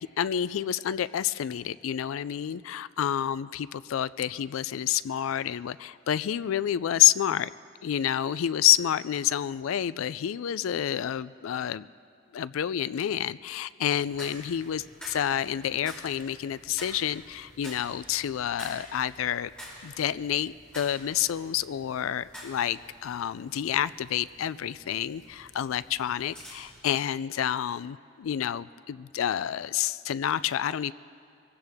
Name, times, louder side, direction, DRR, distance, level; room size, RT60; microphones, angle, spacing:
voice 1, 0.2-7.5 7.8-11.9 12.3-19.5 19.8-30.9, left 10 dB, 90° left, 17 dB, 0.3 m, -28 dB
sound 1, 14.0-26.8, equal, 5° left, 4.6 m, -48 dB
23.5 x 15.5 x 3.5 m, 2.4 s
head